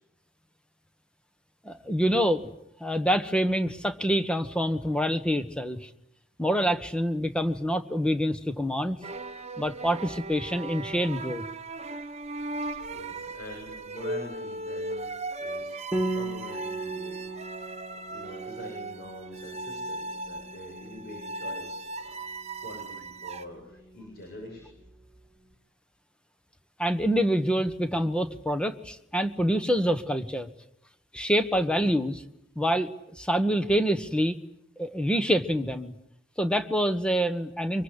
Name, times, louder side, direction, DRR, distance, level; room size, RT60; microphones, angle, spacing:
voice 1, 1.6-2.5 2.8-5.9 6.4-9.0 9.6-11.5 26.8-30.5 31.1-32.2 32.5-32.9 33.2-34.4 34.8-36.0 36.4-37.8, equal, 5° left, 10 dB, 1.3 m, -26 dB
sound 1, 9.0-23.5, right 2 dB, 30° right, 1.1 m, -38 dB
voice 2, 12.6-22.2 22.6-24.7, left 1 dB, 50° left, 1 dB, 7.7 m, -45 dB
Piano, 15.9-25.2, right 2 dB, 10° right, 2.0 m, -38 dB
25.0 x 23.5 x 9.9 m, 0.75 s
head